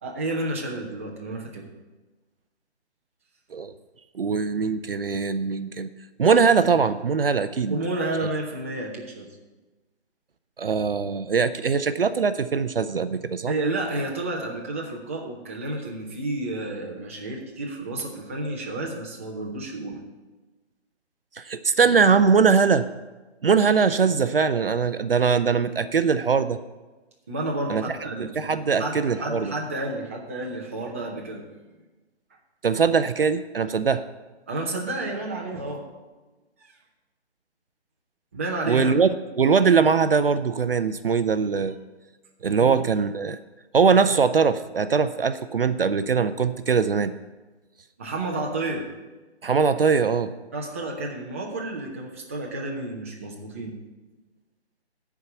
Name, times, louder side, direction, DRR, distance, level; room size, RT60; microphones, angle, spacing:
voice 1, 0.0-1.7 7.7-9.4 13.5-20.0 27.3-28.5 28.8-31.5 34.5-35.9 36.6-36.7 38.3-38.9 42.6-42.8 46.7-46.8 48.0-48.9 50.5-53.7, right 2 dB, 15° right, -2 dB, 0.6 m, -31 dB
voice 2, 4.1-5.9 6.2-7.8 10.6-13.5 21.4-22.9 23.4-26.6 27.7-27.8 28.2-29.5 32.6-34.0 38.7-41.8 42.4-43.4 43.7-47.1 49.4-50.3, right 5 dB, 55° right, 12 dB, 0.5 m, -21 dB
10.5 x 4.7 x 8.1 m, 1.2 s
figure-of-eight pair, 145°, 33 cm